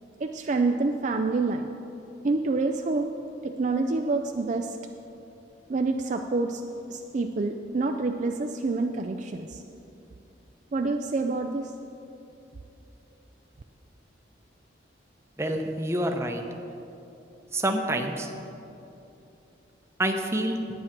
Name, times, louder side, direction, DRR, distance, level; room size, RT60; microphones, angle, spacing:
voice 1, 0.2-1.7 2.2-3.1 3.4-4.8 5.7-6.6 6.9-9.6 10.7-11.7, right 3 dB, 40° right, 5 dB, 0.4 m, -27 dB
voice 2, 15.4-16.4 17.5-18.3 20.0-20.6, right 1 dB, 15° right, 4 dB, 0.7 m, -27 dB
10.5 x 9.1 x 5.9 m, 2.8 s
head